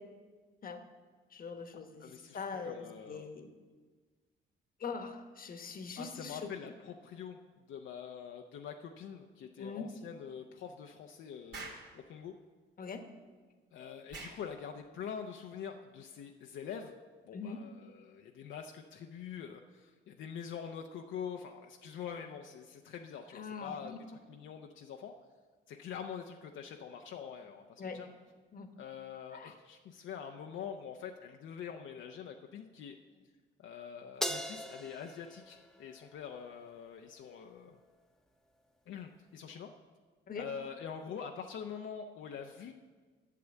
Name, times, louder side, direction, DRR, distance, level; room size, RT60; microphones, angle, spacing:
voice 1, 1.3-3.5 4.8-6.7 9.6-9.9 12.8-13.0 17.3-17.6 23.3-24.0 27.8-28.0 28.5-28.7 29.3-29.5 40.3-40.4, left 5 dB, 45° left, 7 dB, 1.1 m, -42 dB
voice 2, 2.0-3.3 6.0-7.4 7.7-12.3 13.7-17.0 17.3-25.1 25.7-28.1 28.8-33.0 33.6-37.8 38.9-39.7 40.3-42.7, left 7 dB, 75° left, 3 dB, 0.7 m, -45 dB
Explosion, 11.5-11.9 14.1-14.4, right 3 dB, 65° right, 2.3 m, -44 dB
Crash cymbal, 34.2-36.7, equal, ahead, 0.7 m, -40 dB
8.5 x 6.8 x 8.1 m, 1.4 s
cardioid pair, 90°, 20 cm